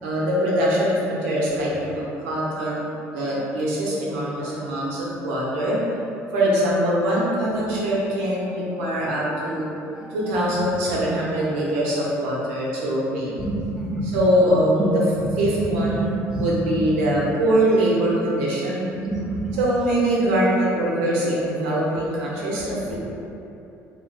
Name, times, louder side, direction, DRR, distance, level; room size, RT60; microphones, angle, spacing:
voice 1, 0.0-5.8 6.3-9.7 10.1-13.3 14.0-15.0 15.4-18.8 19.6-23.0, right 1 dB, 85° right, -6 dB, 0.7 m, -23 dB
voice 2, 13.4-14.2 14.8-14.9 15.4-16.4 16.8-17.1 19.0-19.5, right 2 dB, 10° right, -5 dB, 0.7 m, -27 dB
2.5 x 2.0 x 3.8 m, 2.8 s
supercardioid pair, 70°, 7 cm